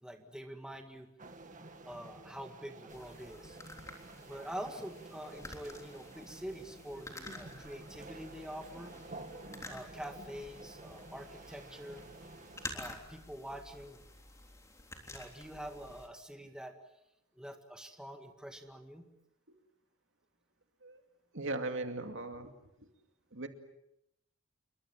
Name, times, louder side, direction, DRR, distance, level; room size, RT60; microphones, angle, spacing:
voice 1, 0.0-1.1 1.9-3.6 4.2-9.2 9.7-12.0 12.7-14.0 15.1-16.7 17.4-19.1, equal, 5° right, 4 dB, 2.0 m, -46 dB
sound 1, 1.2-12.7, right 2 dB, 35° right, 2.1 m, -51 dB
sound 2, 2.9-16.1, left 2 dB, 15° left, 3.5 m, -50 dB
voice 2, 21.3-22.5 23.3-23.5, right 2 dB, 60° right, 6 dB, 2.5 m, -38 dB
28.5 x 23.5 x 7.4 m, 0.84 s
head